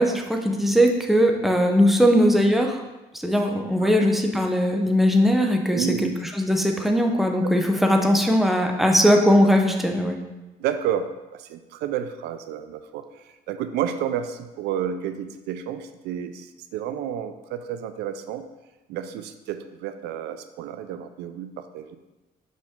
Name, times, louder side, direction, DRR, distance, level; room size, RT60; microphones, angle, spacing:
voice 1, 0.0-2.8 3.2-5.9 6.4-10.2, equal, ahead, 3 dB, 0.7 m, -19 dB
voice 2, 5.7-6.2 10.6-18.5 18.9-22.0, right 9 dB, 80° right, 10 dB, 0.4 m, -31 dB
5.3 x 5.0 x 3.6 m, 1.0 s
cardioid pair, 110°, 17 cm